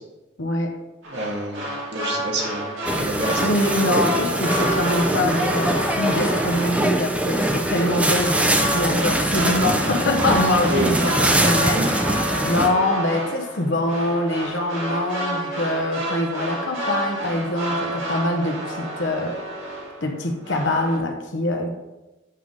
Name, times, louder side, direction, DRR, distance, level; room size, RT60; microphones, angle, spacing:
voice 1, 0.4-0.8 3.4-11.9 12.4-19.4 20.0-21.7, left 1 dB, 70° left, 3 dB, 1.0 m, -24 dB
sound 1, 1.0-20.1 20.4-21.0, right 1 dB, 80° right, 2.2 m, -29 dB
voice 2, 1.1-1.7 1.9-3.4 10.7-10.9, right 1 dB, 55° right, -1 dB, 1.3 m, -28 dB
sound 2, 2.8-12.7, right 1 dB, 5° right, 0.5 m, -23 dB
8.5 x 3.6 x 5.2 m, 1.0 s
head